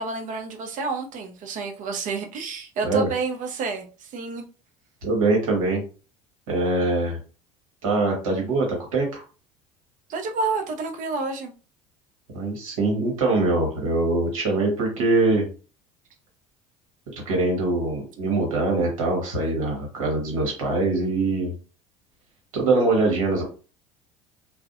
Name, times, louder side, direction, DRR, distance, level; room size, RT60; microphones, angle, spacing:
voice 1, 0.0-4.4 10.1-11.5, right 4 dB, 50° right, 0.7 m, -29 dB
voice 2, 5.0-5.8 6.5-7.2 7.8-9.2 12.3-15.5 17.2-21.5 22.5-23.4, right 2 dB, 80° right, 1.0 m, -23 dB
2.5 x 2.1 x 2.5 m
hypercardioid pair, 70°, 17 cm